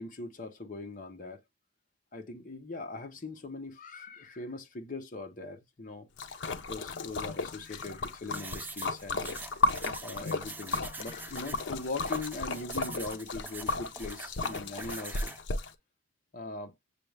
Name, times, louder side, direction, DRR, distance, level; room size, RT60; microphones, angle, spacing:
voice 1, 0.0-1.4 2.1-6.1 6.7-9.3 10.0-15.3 16.3-16.7, left 3 dB, 45° left, 0.9 m, -41 dB
Splash splatter, 6.2-15.7, left 3 dB, 75° left, 0.6 m, -34 dB
sound 1, 8.3-15.4, right 3 dB, 10° right, 0.3 m, -45 dB
6.7 x 2.4 x 3.3 m
head